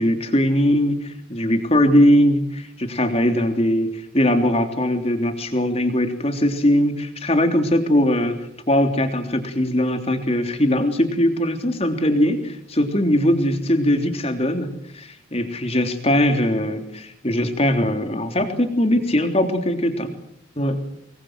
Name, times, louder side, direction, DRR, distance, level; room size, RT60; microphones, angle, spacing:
voice 1, 0.0-8.4 8.7-20.1 20.6-20.8, left 1 dB, 30° left, 6 dB, 3.2 m, -20 dB
26.0 x 21.5 x 7.6 m, 0.74 s
head